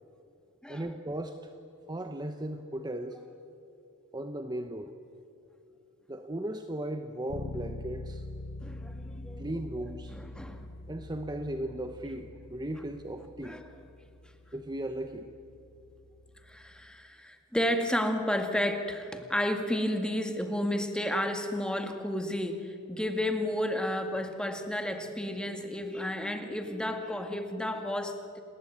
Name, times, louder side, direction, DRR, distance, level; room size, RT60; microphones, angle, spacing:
voice 1, 0.7-1.5 1.9-3.2 4.1-4.9 6.1-8.2 9.4-10.2 10.9-13.6 14.5-15.3, right 1 dB, 20° right, 7 dB, 1.0 m, -36 dB
Bass guitar, 7.3-17.0, left 2 dB, 70° left, 0.9 m, -45 dB
voice 2, 8.6-9.4 10.1-10.7 13.4-13.6 16.5-28.4, left 1 dB, 5° left, 5 dB, 1.9 m, -32 dB
29.5 x 20.5 x 9.4 m, 2.6 s
head